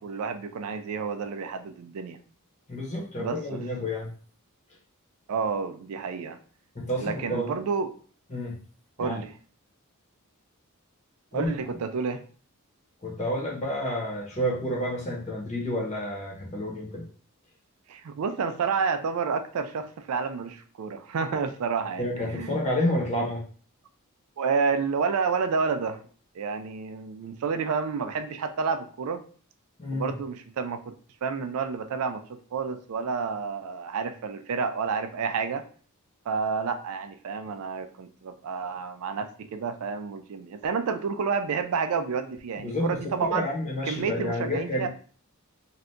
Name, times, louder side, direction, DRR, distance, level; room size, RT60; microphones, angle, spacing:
voice 1, 0.0-2.2 3.2-3.6 5.3-6.4 7.0-7.9 9.0-9.3 11.3-12.2 17.9-22.7 24.4-26.0 26.3-29.2 29.9-30.9 31.2-35.6 36.3-43.5 43.9-44.9, right 5 dB, 70° right, 8 dB, 0.4 m, -30 dB
voice 2, 2.7-4.1 6.7-7.6 8.3-8.6 9.0-9.2 11.3-11.7 13.0-17.0 22.0-23.4 29.8-30.1 42.6-44.9, left 1 dB, 30° left, -2 dB, 1.0 m, -30 dB
2.7 x 2.4 x 3.4 m, 0.42 s
head